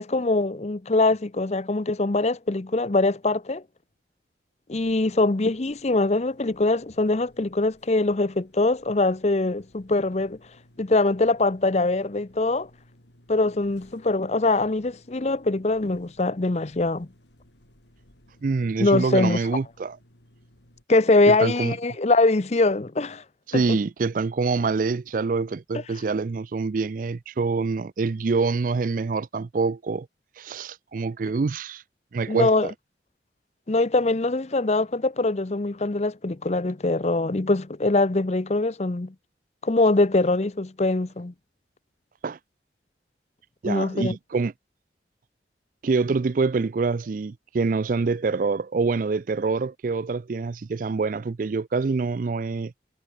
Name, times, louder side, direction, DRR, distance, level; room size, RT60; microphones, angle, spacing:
voice 1, 0.0-3.6 4.7-10.4 10.8-12.7 13.3-17.1 18.8-19.4 20.9-23.2 23.5-23.6 32.3-32.7 33.7-39.1 39.6-41.3 43.6-44.1, left 2 dB, 35° left, 0.7 m, -23 dB
sound 1, 4.7-20.8, equal, 75° left, 6.0 m, -58 dB
voice 2, 18.4-20.0 21.3-21.7 23.5-30.1 30.4-31.8 32.1-32.7 42.2-42.4 43.6-44.5 45.8-52.7, right 4 dB, 50° right, 0.4 m, -26 dB
head